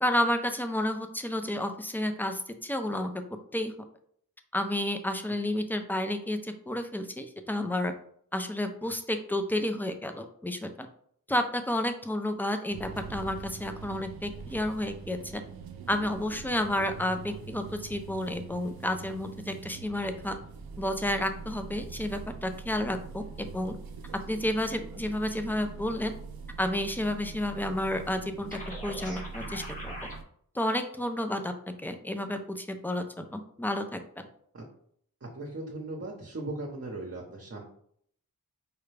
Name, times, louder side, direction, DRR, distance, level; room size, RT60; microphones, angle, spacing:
voice 1, 0.0-3.1 3.5-3.7 4.5-7.9 8.3-10.9 11.3-15.4 15.9-20.4 20.8-23.8 24.3-26.1 26.6-29.9 30.5-31.5 31.8-34.3, left 1 dB, 5° left, 7 dB, 0.5 m, -31 dB
sound 1, 12.7-30.2, right 5 dB, 85° right, 0.5 m, -43 dB
sound 2, 28.5-30.2, left 1 dB, 20° left, 1.2 m, -41 dB
voice 2, 35.2-37.6, right 2 dB, 40° right, -1 dB, 0.9 m, -38 dB
4.9 x 2.2 x 3.3 m, 0.65 s
cardioid pair, 55°, 35 cm